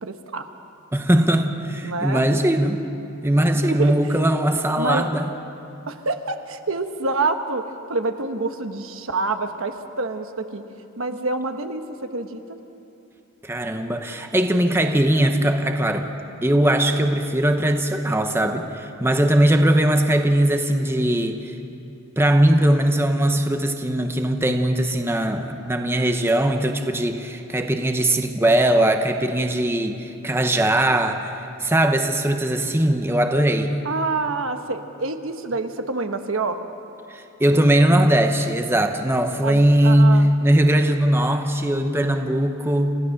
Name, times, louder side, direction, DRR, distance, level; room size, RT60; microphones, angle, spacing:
voice 1, 0.0-0.4 1.8-2.2 3.6-3.9 4.8-5.1 5.9-7.6 7.9-10.6 11.0-12.6 33.8-36.6 39.4-40.3, right 3 dB, 70° right, 7 dB, 1.2 m, -27 dB
voice 2, 0.9-2.8 3.2-5.2 13.4-16.1 16.4-21.6 22.2-33.8 37.1-43.0, right 1 dB, 10° right, 5 dB, 0.9 m, -20 dB
29.5 x 15.5 x 6.5 m, 2.8 s
head